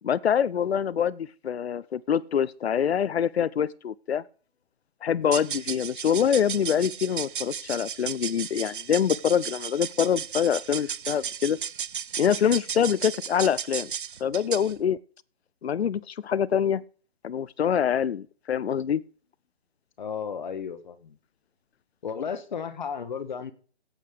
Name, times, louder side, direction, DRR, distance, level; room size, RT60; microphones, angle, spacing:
voice 1, 0.0-4.2 5.0-11.6 12.2-13.9 14.2-15.0 15.6-16.8 17.2-19.0, left 8 dB, 75° left, 0.7 m, -25 dB
sound 1, 5.2-14.8, right 8 dB, 55° right, 0.6 m, -35 dB
voice 2, 20.0-21.2 22.0-23.5, left 6 dB, 45° left, 1.2 m, -34 dB
17.0 x 8.3 x 5.0 m
hypercardioid pair, 165°, 32 cm